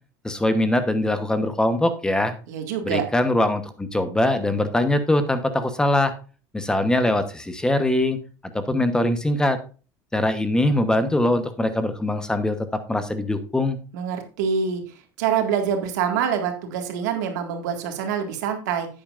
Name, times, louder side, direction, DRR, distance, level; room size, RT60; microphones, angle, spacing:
voice 1, 0.2-2.3 2.8-6.1 6.5-8.2 8.5-9.6 10.1-12.6 12.9-13.8, left 1 dB, 10° left, 10 dB, 1.0 m, -22 dB
voice 2, 2.5-3.0 13.9-18.9, right 7 dB, 90° right, 5 dB, 1.9 m, -25 dB
10.0 x 8.8 x 2.5 m, 0.35 s
supercardioid pair, 125°, 9 cm